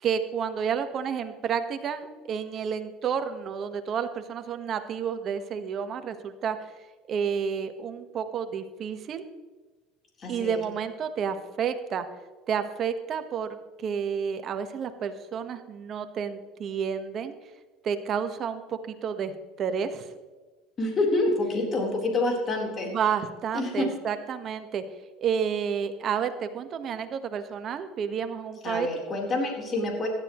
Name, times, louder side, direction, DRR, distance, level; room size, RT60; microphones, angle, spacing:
voice 1, 0.0-6.6 7.1-9.2 10.3-12.0 12.5-13.5 13.8-17.3 17.8-20.1 22.9-24.8 25.2-28.9, right 7 dB, 45° right, 8 dB, 1.4 m, -30 dB
voice 2, 10.2-10.7 20.8-22.9 23.5-23.9 28.6-30.1, left 2 dB, 35° left, -1 dB, 4.0 m, -27 dB
17.0 x 12.5 x 3.1 m, 1.3 s
supercardioid pair, 105°, 0 cm